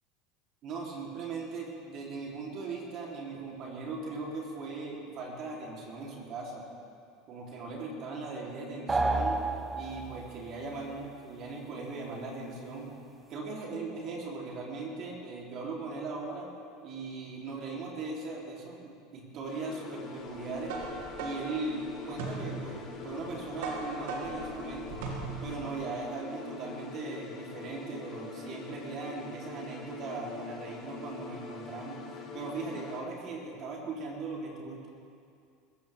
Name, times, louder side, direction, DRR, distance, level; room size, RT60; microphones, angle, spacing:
voice 1, 0.6-6.6 7.3-9.4 9.7-12.9 13.3-16.5 16.8-20.8 21.2-25.0 25.4-32.0 32.3-34.9, right 3 dB, 50° right, -3 dB, 3.8 m, -39 dB
sound 1, 8.9-10.4, right 2 dB, 20° right, 1.0 m, -30 dB
sound 2, 19.4-33.0, left 5 dB, 45° left, 3.0 m, -44 dB
sound 3, 20.3-25.7, right 3 dB, 70° right, 2.6 m, -39 dB
20.5 x 15.5 x 3.7 m, 2.4 s
hypercardioid pair, 85°, 0 cm